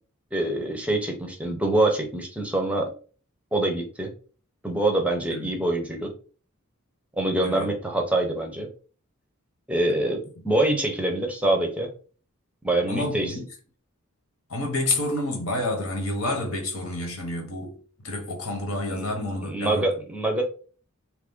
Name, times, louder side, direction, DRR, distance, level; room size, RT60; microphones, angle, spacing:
voice 1, 0.3-2.9 3.5-4.1 4.6-6.1 7.1-8.7 9.7-11.9 12.6-13.3 18.9-19.1 19.4-20.4, right 1 dB, 5° right, 0.5 m, -25 dB
voice 2, 12.9-13.4 14.5-17.8 18.0-19.8, left 2 dB, 90° left, 1.2 m, -29 dB
3.0 x 2.5 x 3.5 m
head